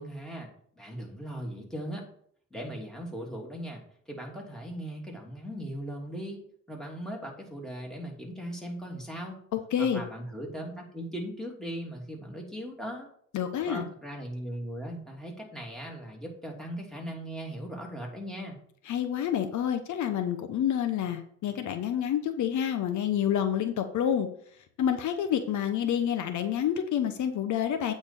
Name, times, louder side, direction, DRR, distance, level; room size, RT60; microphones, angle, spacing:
voice 1, 0.0-2.1 2.5-6.4 6.7-9.4 9.8-13.1 13.6-18.6, equal, ahead, -1 dB, 2.9 m, -38 dB
voice 2, 9.5-10.0 13.3-13.9 18.9-24.3 24.8-27.9, left 9 dB, 75° left, 8 dB, 1.0 m, -28 dB
8.7 x 4.3 x 6.9 m, 0.62 s
cardioid pair, 90°, 30 cm